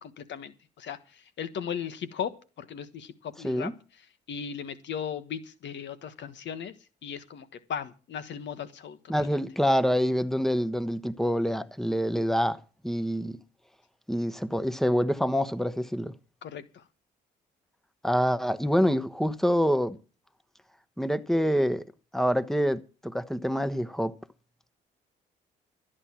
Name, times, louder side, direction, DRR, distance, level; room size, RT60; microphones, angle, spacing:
voice 1, 0.0-3.7 4.3-6.7 7.0-9.3 16.4-16.8, left 8 dB, 65° left, 1.3 m, -37 dB
voice 2, 9.1-13.4 14.1-16.1 18.0-20.0 21.0-21.8 22.1-24.1, equal, ahead, 1.1 m, -26 dB
13.5 x 10.0 x 6.0 m
supercardioid pair, 65°, 20 cm